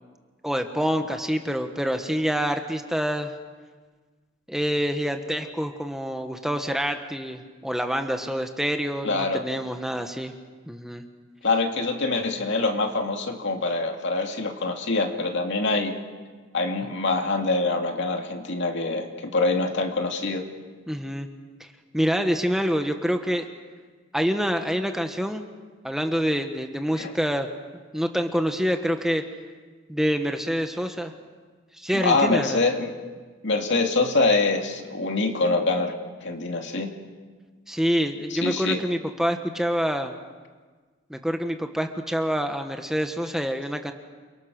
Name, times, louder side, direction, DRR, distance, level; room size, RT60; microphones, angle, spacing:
voice 1, 0.4-3.3 4.5-10.3 10.7-11.0 20.9-21.3 21.9-23.5 24.1-25.5 25.8-27.5 27.9-29.2 29.9-31.1 31.8-32.6 37.7-40.1 41.1-43.9, equal, ahead, 5 dB, 1.2 m, -26 dB
voice 2, 9.0-9.4 11.4-15.9 16.5-20.4 26.9-27.1 31.9-32.9 33.4-35.9 36.2-36.9 38.3-38.8, left 3 dB, 65° left, 3 dB, 2.6 m, -24 dB
29.0 x 23.5 x 6.5 m, 1.4 s
head